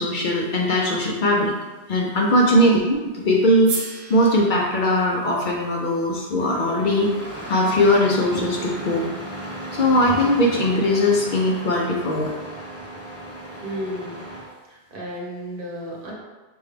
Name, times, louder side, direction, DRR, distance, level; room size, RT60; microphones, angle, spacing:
voice 1, 0.0-1.5 1.9-3.7 4.1-7.1 7.5-9.1 9.7-12.3, left 1 dB, 55° left, -1 dB, 0.6 m, -20 dB
voice 2, 2.5-2.8 13.6-14.2 14.7-16.1, equal, 55° right, -3 dB, 1.0 m, -33 dB
sound 1, 3.6-7.8, right 4 dB, 85° right, 0.9 m, -38 dB
Engine starting, 6.4-14.5, right 1 dB, 25° left, 0.4 m, -35 dB
5.3 x 2.3 x 3.2 m, 1.2 s
omnidirectional pair, 1.1 m